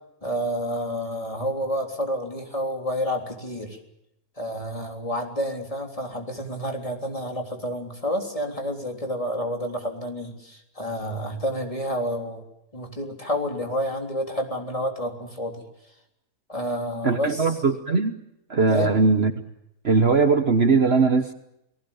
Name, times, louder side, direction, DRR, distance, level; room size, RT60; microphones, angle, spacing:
voice 1, 0.2-3.8 4.4-12.4 12.7-15.6 16.5-17.6 18.7-18.9, equal, 20° left, 3 dB, 3.6 m, -29 dB
voice 2, 17.0-18.2 18.5-19.3 19.8-21.3, right 4 dB, 45° right, 8 dB, 1.4 m, -20 dB
29.0 x 19.5 x 7.1 m, 0.83 s
omnidirectional pair, 1.5 m